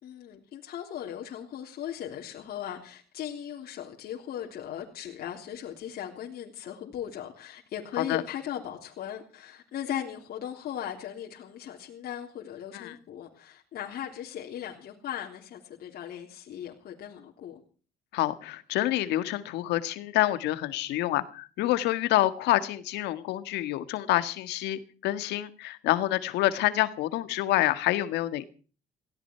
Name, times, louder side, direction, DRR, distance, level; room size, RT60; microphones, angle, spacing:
voice 1, 0.0-17.6, left 10 dB, 65° left, -1 dB, 3.5 m, -38 dB
voice 2, 18.1-28.4, left 15 dB, 85° left, 12 dB, 1.8 m, -27 dB
18.5 x 16.5 x 4.6 m, 0.39 s
cardioid pair, 110°, 17 cm